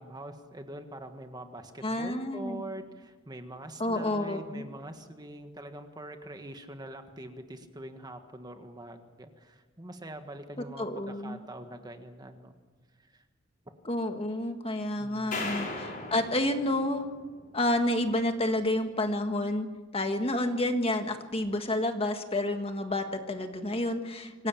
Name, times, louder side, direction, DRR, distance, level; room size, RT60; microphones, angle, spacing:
voice 1, 0.0-12.5 13.0-13.2 15.0-15.7, right 1 dB, 20° right, 6 dB, 1.6 m, -44 dB
voice 2, 1.8-2.6 3.8-4.6 10.8-11.4 13.8-17.1 17.5-19.7 19.9-24.5, left 1 dB, 30° left, 6 dB, 1.6 m, -29 dB
sound 1, 15.3-17.6, left 3 dB, 45° left, 5.8 m, -38 dB
25.5 x 16.5 x 9.0 m, 1.4 s
head